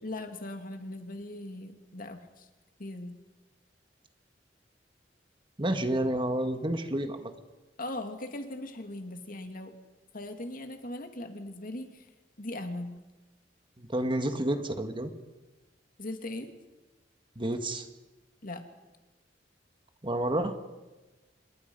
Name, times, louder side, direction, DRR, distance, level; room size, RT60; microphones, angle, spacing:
voice 1, 0.0-2.5 2.8-3.2 7.8-9.8 10.1-12.1 12.4-13.0 16.0-16.5 18.4-18.6, left 1 dB, 50° left, 6 dB, 2.4 m, -39 dB
voice 2, 5.6-7.3 13.8-15.1 17.3-17.9 20.0-20.5, right 1 dB, 30° right, 7 dB, 1.7 m, -30 dB
27.5 x 21.0 x 5.4 m, 1.1 s
head